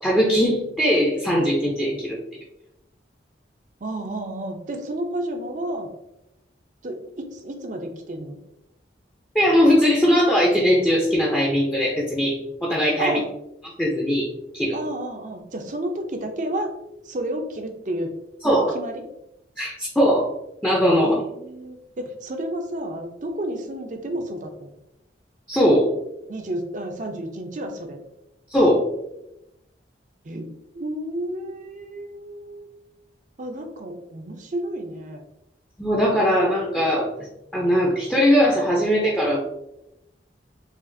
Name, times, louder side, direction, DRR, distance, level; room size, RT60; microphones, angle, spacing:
voice 1, 0.0-2.2 9.3-13.2 13.8-14.3 14.5-14.8 18.4-18.7 19.6-20.3 20.6-21.2 25.5-25.9 28.5-28.8 35.8-37.3 37.5-39.4, equal, 5° left, -4 dB, 0.5 m, -20 dB
voice 2, 3.8-5.9 6.8-8.4 13.0-13.3 14.7-16.7 17.0-18.1 18.4-19.0 21.0-24.7 26.3-28.0 30.2-30.5 30.7-32.7 33.4-35.2, right 1 dB, 45° right, 5 dB, 0.5 m, -31 dB
4.9 x 2.5 x 2.5 m, 0.86 s
head